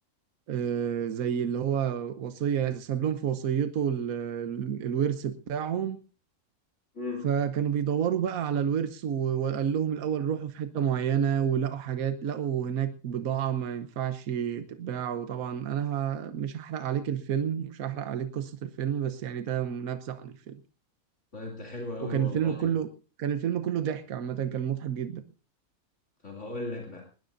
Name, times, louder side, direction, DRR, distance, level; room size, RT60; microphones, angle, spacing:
voice 1, 0.5-6.0 7.2-20.6 22.0-22.9 23.2-25.2, right 8 dB, 75° right, 10 dB, 1.3 m, -29 dB
voice 2, 6.9-7.3 21.3-22.7 26.2-27.1, left 2 dB, 55° left, -1 dB, 3.0 m, -36 dB
20.0 x 20.0 x 2.6 m, 0.34 s
omnidirectional pair, 1.5 m